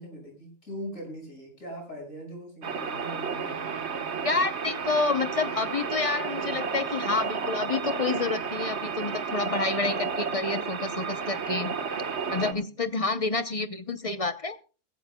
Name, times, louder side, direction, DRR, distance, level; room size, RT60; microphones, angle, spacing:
voice 1, 0.0-3.7 9.2-9.5 12.3-12.7, equal, 60° left, 2 dB, 6.3 m, -41 dB
sound 1, 2.6-12.5, right 5 dB, 50° right, 1.5 m, -32 dB
voice 2, 4.2-11.7 12.3-14.6, left 3 dB, 40° left, 11 dB, 0.5 m, -29 dB
20.5 x 15.0 x 2.2 m, 0.34 s
omnidirectional pair, 1.5 m